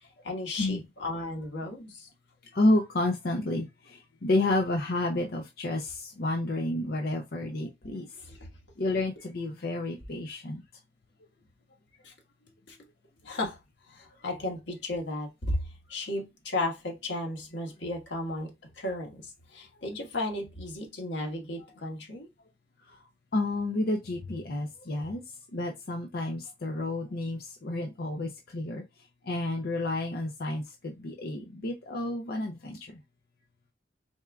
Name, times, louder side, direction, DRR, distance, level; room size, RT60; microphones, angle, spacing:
voice 1, 0.2-2.1 8.3-8.5 12.0-12.1 12.7-12.8 13.2-13.6 13.9-15.6 15.9-18.5 18.8-19.2 19.5-22.3, left 2 dB, 80° left, 1.5 m, -34 dB
voice 2, 2.5-8.1 8.8-10.6 22.9-23.0 23.3-25.2 25.5-28.8 29.2-33.0, left 2 dB, 55° left, 0.6 m, -30 dB
4.3 x 3.6 x 2.3 m
head